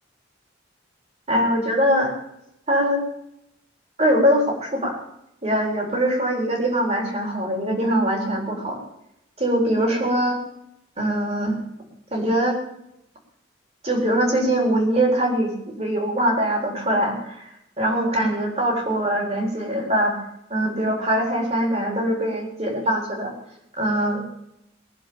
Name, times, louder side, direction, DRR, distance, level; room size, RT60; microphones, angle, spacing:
voice 1, 1.3-2.1 2.7-3.0 4.0-5.0 5.4-8.8 9.4-10.4 11.0-11.6 12.1-12.6 13.8-15.5 15.8-20.1 20.5-23.3 23.8-24.4, equal, 35° right, 0 dB, 4.0 m, -22 dB
21.0 x 7.5 x 7.0 m, 0.81 s
head